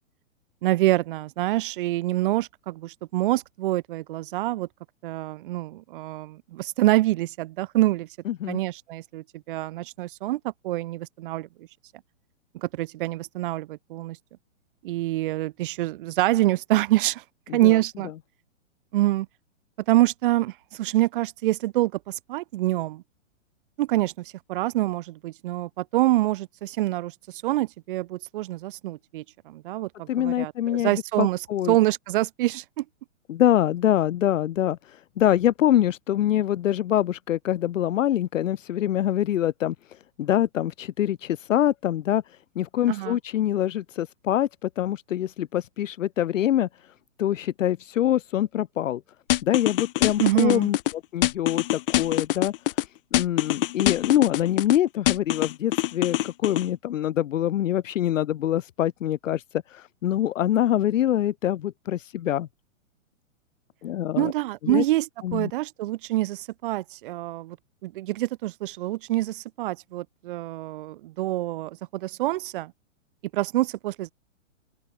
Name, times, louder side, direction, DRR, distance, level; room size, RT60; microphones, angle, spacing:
voice 1, 0.6-4.7 5.0-8.1 8.5-11.5 12.5-14.2 14.8-17.2 17.5-18.1 18.9-19.3 19.9-23.0 23.8-27.1 27.4-31.4 31.7-32.8 42.9-43.2 50.2-50.7 64.2-65.1 65.3-67.6 67.8-72.7 73.3-74.1, right 16 dB, 45° right, 0.7 m, -26 dB
voice 2, 8.3-8.6 17.5-17.8 30.1-31.8 33.3-42.2 42.6-46.7 47.2-49.0 49.4-50.8 51.1-52.5 53.1-59.4 59.7-62.5 63.8-64.3 64.6-64.8 65.2-65.5, left 12 dB, 75° left, 0.8 m, -25 dB
sound 1, 49.3-50.9 51.2-52.8 53.1-54.8 55.1-56.6, left 15 dB, 45° left, 0.6 m, -24 dB
open air
hypercardioid pair, 145°, 38 cm